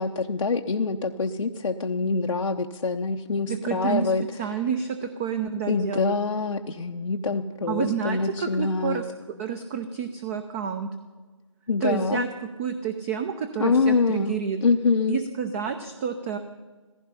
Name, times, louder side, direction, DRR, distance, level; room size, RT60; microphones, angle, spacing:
voice 1, 0.0-4.2 5.7-9.0 11.7-12.2 13.6-14.3 14.6-15.2, left 4 dB, 75° left, 2 dB, 0.9 m, -25 dB
voice 2, 3.5-4.1 4.4-6.2 7.7-10.9 11.8-12.3 12.6-14.6 15.1-16.4, right 7 dB, 25° right, 10 dB, 0.7 m, -29 dB
15.5 x 15.0 x 5.6 m, 1.3 s
figure-of-eight pair, 150°, 17 cm